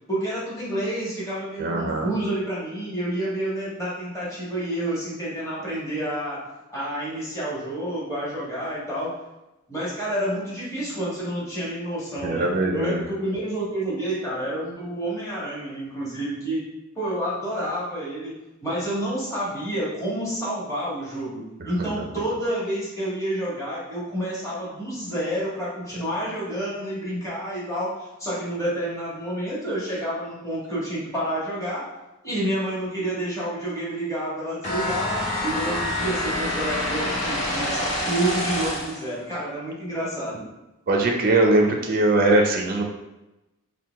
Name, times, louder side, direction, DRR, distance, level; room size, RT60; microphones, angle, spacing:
voice 1, 0.1-6.4 6.7-9.1 9.7-16.6 16.9-18.4 18.6-31.9 32.2-40.5, right 1 dB, 15° left, -8 dB, 1.4 m, -29 dB
voice 2, 1.6-2.1 12.2-13.0 21.6-21.9 40.9-42.8, right 2 dB, 45° right, 1 dB, 0.4 m, -21 dB
sound 1, 34.6-39.1, left 1 dB, 35° left, 1.1 m, -27 dB
4.5 x 2.2 x 3.4 m, 0.97 s
head